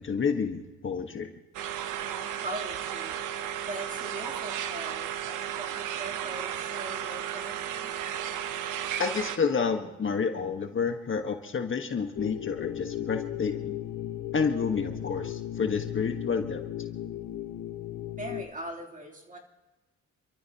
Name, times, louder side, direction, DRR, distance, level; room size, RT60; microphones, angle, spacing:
voice 1, 0.0-1.3 9.0-13.8 14.3-16.6, left 5 dB, 40° left, 5 dB, 1.5 m, -29 dB
sound 1, 1.5-9.4, right 10 dB, 90° right, 1.0 m, -34 dB
voice 2, 2.0-3.1 3.6-7.9 18.1-19.4, right 1 dB, 25° right, -1 dB, 3.3 m, -41 dB
sound 2, 12.2-18.4, left 12 dB, 80° left, 1.2 m, -36 dB
28.5 x 13.5 x 3.0 m, 1.1 s
cardioid pair, 90°, 30 cm